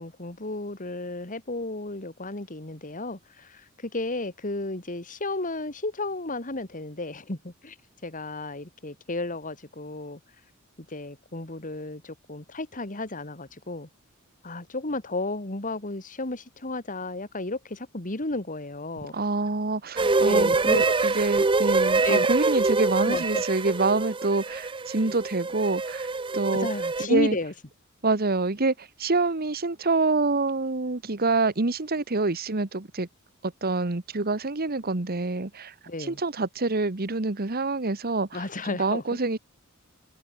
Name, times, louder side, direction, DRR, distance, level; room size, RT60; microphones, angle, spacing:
voice 1, 0.0-7.8 8.0-10.2 10.9-13.9 14.4-19.2 20.2-21.1 22.0-22.2 23.0-23.4 26.5-27.5 35.9-36.2 38.3-39.0, left 2 dB, 40° left, 2.6 m, -33 dB
voice 2, 19.1-26.1 26.3-26.7 27.0-27.4 28.0-33.1 33.4-39.4, right 3 dB, 45° right, 1.3 m, -26 dB
sound 1, 20.0-27.1, right 3 dB, 25° right, 0.7 m, -25 dB
head